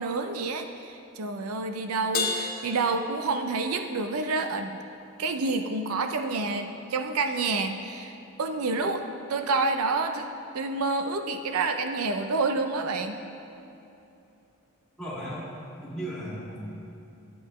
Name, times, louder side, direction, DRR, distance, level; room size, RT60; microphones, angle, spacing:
voice 1, 0.0-4.8 5.2-10.3 10.5-13.2, right 3 dB, 85° right, 7 dB, 0.5 m, -28 dB
Crash cymbal, 2.1-3.9, left 4 dB, 40° left, 0.9 m, -32 dB
voice 2, 15.0-15.4 15.8-16.6, equal, ahead, -9 dB, 2.1 m, -35 dB
12.0 x 7.7 x 3.1 m, 2.8 s
head